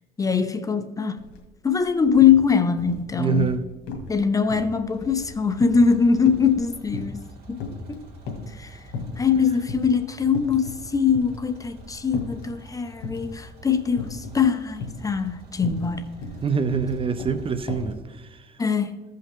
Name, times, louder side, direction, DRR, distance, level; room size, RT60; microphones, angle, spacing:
voice 1, 0.2-1.2 1.6-3.5 4.1-7.6 7.9-8.0 8.5-8.8 9.2-16.2 18.6-19.0, left 6 dB, 20° left, 0.6 m, -22 dB
sound 1, 1.2-1.4 1.7-2.4 2.8-3.6 3.9-4.2 4.5-7.3 7.6-8.6 8.9-9.4 9.7-9.9 10.3-10.9 11.1-12.5 13.0-13.4 14.0-14.4 14.8-18.0, left 4 dB, 80° left, 2.0 m, -35 dB
voice 2, 3.2-3.6 16.4-18.5, right 6 dB, 30° right, 0.6 m, -25 dB
sound 2, 4.8-17.9, right 2 dB, 65° right, 2.8 m, -47 dB
15.0 x 5.6 x 3.6 m
cardioid pair, 110°, 17 cm